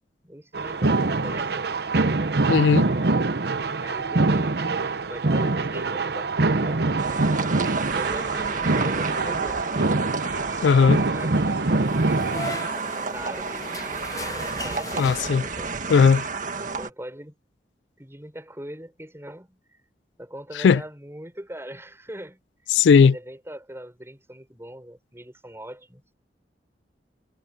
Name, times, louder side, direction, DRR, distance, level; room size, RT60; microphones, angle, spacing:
voice 1, 0.2-1.7 3.8-4.6 4.9-7.3 7.9-9.6 10.8-12.0 13.1-13.6 14.5-15.7 16.5-17.3 18.0-19.6 20.2-22.4 23.0-26.0, right 1 dB, 15° right, 6.4 m, -41 dB
sound 1, 0.5-12.7, right 3 dB, 65° right, 0.9 m, -24 dB
voice 2, 2.5-2.9 10.6-11.0 15.0-15.4 15.9-16.2 20.6-20.8 22.7-23.1, left 6 dB, 85° left, 0.3 m, -17 dB
sound 2, 7.0-16.9, right 4 dB, 45° right, 1.7 m, -31 dB
sound 3, 11.8-15.7, left 3 dB, 20° left, 0.6 m, -38 dB
head